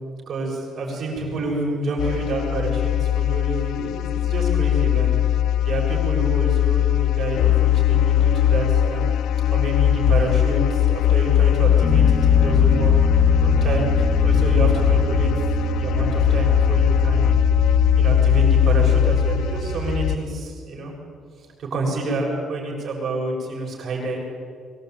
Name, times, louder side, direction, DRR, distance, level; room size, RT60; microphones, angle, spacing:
voice 1, 0.3-5.1 5.6-9.1 9.5-13.0 13.4-15.3 15.8-17.5 18.0-20.9 21.6-24.2, right 2 dB, 45° right, -1 dB, 7.2 m, -28 dB
sound 1, 2.0-20.2, left 10 dB, 70° left, 0.7 m, -19 dB
Piano, 11.8-19.9, right 4 dB, 25° left, 1.6 m, -26 dB
24.0 x 18.5 x 9.4 m, 2.2 s
cardioid pair, 165°, 0 cm